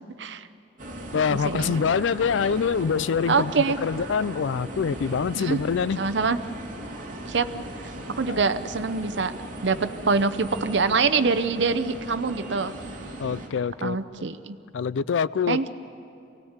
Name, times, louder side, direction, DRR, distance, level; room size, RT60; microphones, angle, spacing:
sound 1, 0.8-13.5, right 1 dB, 45° right, 2.7 m, -38 dB
voice 1, 1.1-6.0 8.3-8.5 13.2-14.0 14.7-15.7, left 6 dB, 85° left, 19 dB, 0.4 m, -25 dB
voice 2, 3.3-3.8 5.4-5.6 6.0-6.4 7.3-7.5 8.2-9.3 9.6-12.7 13.8-14.6 15.5-15.7, right 4 dB, 65° right, 10 dB, 0.7 m, -24 dB
23.5 x 17.5 x 8.0 m, 2.8 s
head